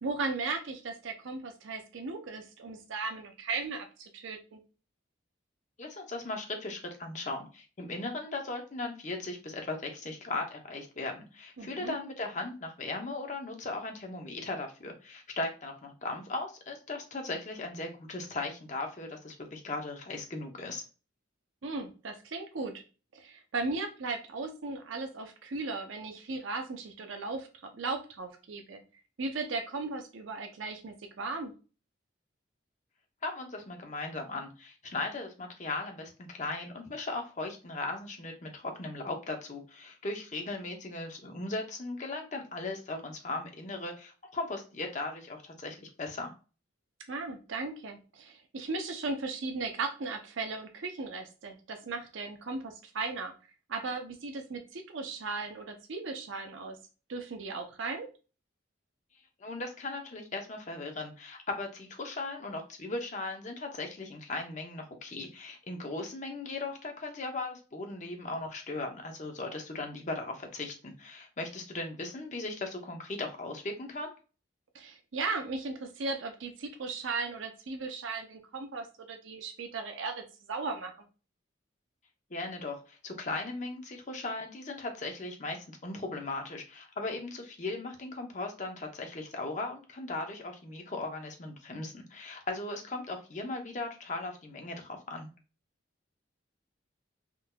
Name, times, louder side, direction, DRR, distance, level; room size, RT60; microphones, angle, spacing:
voice 1, 0.0-4.6 11.6-12.0 21.6-22.8 23.1-27.5 27.7-28.8 29.2-31.5 47.1-53.3 53.7-56.8 57.1-58.1 74.7-80.2 80.5-80.9, right 3 dB, 75° right, 5 dB, 0.6 m, -36 dB
voice 2, 5.8-20.8 33.2-46.3 59.4-74.1 82.3-95.3, left 2 dB, 35° left, 3 dB, 0.7 m, -38 dB
3.7 x 2.7 x 2.2 m, 0.34 s
head